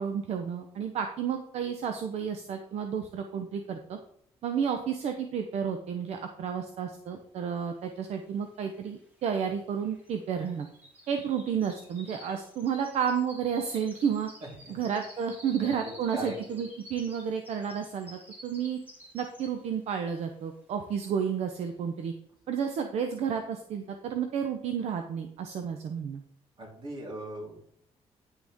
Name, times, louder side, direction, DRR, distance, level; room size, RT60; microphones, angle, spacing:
voice 1, 0.0-4.0 4.4-10.7 11.1-14.3 14.7-18.8 19.1-22.1 22.5-26.2, right 7 dB, 70° right, 6 dB, 0.8 m, -31 dB
sound 1, 8.1-8.2 8.3-19.8 20.2-20.5 21.0-21.1, equal, 15° right, 2.4 m, -51 dB
voice 2, 15.5-16.6 26.6-27.7, right 1 dB, 45° right, -3 dB, 3.9 m, -40 dB
10.0 x 6.3 x 3.6 m, 0.70 s
cardioid pair, 135°, 12 cm